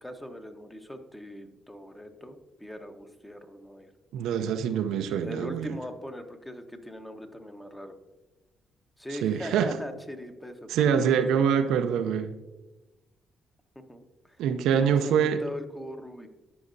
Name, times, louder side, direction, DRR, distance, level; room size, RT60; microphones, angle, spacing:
voice 1, 0.0-3.9 5.2-7.9 9.0-11.5 13.7-14.4 14.7-16.3, left 1 dB, 10° left, 1.0 m, -40 dB
voice 2, 4.1-5.8 9.2-9.8 10.7-12.3 14.4-15.4, right 8 dB, 80° right, 0.4 m, -25 dB
13.0 x 5.4 x 2.6 m
supercardioid pair, 60°, 0 cm